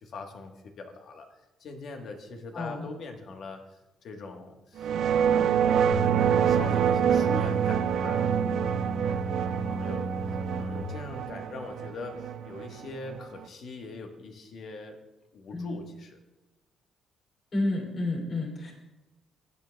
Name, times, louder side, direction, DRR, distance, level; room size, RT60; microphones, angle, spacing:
voice 1, 0.0-1.3 1.6-3.7 4.0-5.7 6.4-8.3 9.6-10.1 10.6-15.0 15.3-16.2, left 3 dB, 65° left, 4 dB, 1.3 m, -41 dB
voice 2, 2.5-2.9 15.5-15.8 17.5-18.7, left 2 dB, 50° left, -1 dB, 2.8 m, -30 dB
sound 1, 4.8-13.4, right 8 dB, 70° right, 0.4 m, -26 dB
sound 2, 5.9-10.8, right 2 dB, 30° left, 1.3 m, -34 dB
16.0 x 8.7 x 2.3 m, 1.0 s
cardioid pair, 90°, 0 cm